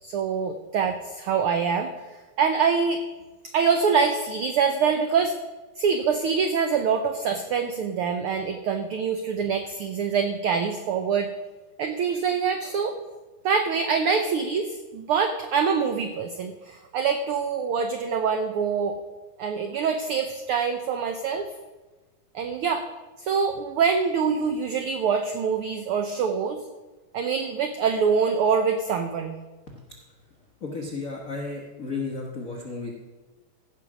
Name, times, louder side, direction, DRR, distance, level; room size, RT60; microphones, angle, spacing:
voice 1, 0.0-1.9 2.4-3.0 3.5-5.3 5.8-11.3 11.8-13.0 13.4-19.0 19.4-21.5 22.3-22.9 23.2-26.6 27.1-29.4, right 6 dB, 85° right, 6 dB, 1.2 m, -25 dB
voice 2, 30.6-32.9, left 3 dB, 70° left, -1 dB, 0.7 m, -33 dB
15.0 x 5.7 x 6.1 m, 1.2 s
omnidirectional pair, 3.3 m